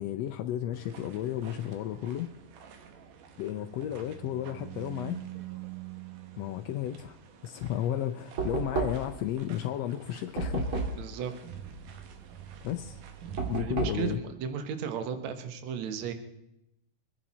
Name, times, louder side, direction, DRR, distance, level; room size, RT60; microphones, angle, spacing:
voice 1, 0.0-2.3 3.4-5.2 6.4-7.2 7.4-10.7 12.6-13.0 13.4-14.2, left 11 dB, 75° left, 6 dB, 1.6 m, -33 dB
sound 1, 0.7-13.6, right 9 dB, 85° right, 2.8 m, -47 dB
Knock, 8.4-9.2 10.4-11.1 13.4-14.1, right 4 dB, 45° right, 2.8 m, -31 dB
voice 2, 11.0-11.3 13.6-16.1, right 7 dB, 65° right, 8 dB, 2.3 m, -34 dB
24.0 x 10.5 x 4.2 m, 0.83 s
omnidirectional pair, 3.6 m